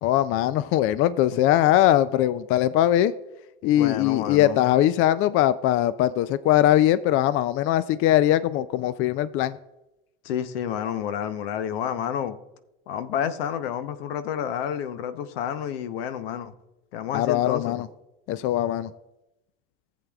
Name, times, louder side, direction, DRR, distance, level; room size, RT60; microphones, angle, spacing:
voice 1, 0.0-3.1 3.6-9.6 17.1-17.9 18.3-18.9, left 13 dB, 45° left, 0.4 m, -21 dB
voice 2, 3.7-4.7 10.2-12.4 12.9-16.5 16.9-17.8, left 9 dB, 75° left, 0.9 m, -30 dB
14.5 x 8.3 x 2.3 m
hypercardioid pair, 100°, 30 cm